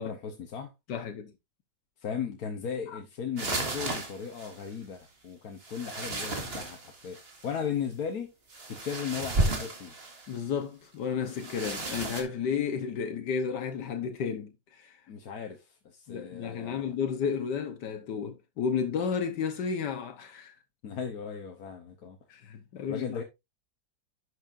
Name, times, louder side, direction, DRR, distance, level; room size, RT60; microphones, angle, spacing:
voice 1, 0.0-0.7 2.0-8.3 8.7-9.9 15.1-16.9 20.8-22.2 22.9-23.2, left 7 dB, 60° left, 1.5 m, -37 dB
voice 2, 0.9-1.3 2.9-3.0 10.3-15.0 16.1-20.5 22.3-23.2, left 6 dB, 80° left, 1.6 m, -32 dB
sound 1, 3.4-4.7 5.6-7.5 8.5-10.4 11.3-12.2, right 2 dB, 35° right, 1.8 m, -33 dB
10.5 x 6.4 x 2.6 m
omnidirectional pair, 1.8 m